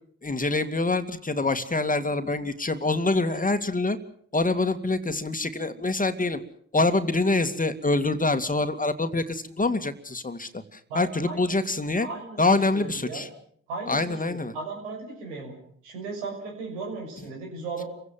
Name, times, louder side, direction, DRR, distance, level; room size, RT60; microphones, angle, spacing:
voice 1, 0.2-4.0 4.3-6.4 6.7-12.1 12.4-13.3 13.9-14.5, left 2 dB, 25° left, 9 dB, 2.4 m, -25 dB
voice 2, 10.9-11.4 12.0-13.2 13.7-15.6 15.8-17.9, right 3 dB, 85° right, 0 dB, 6.6 m, -36 dB
28.0 x 16.5 x 7.7 m, 0.64 s
hypercardioid pair, 45°, 34 cm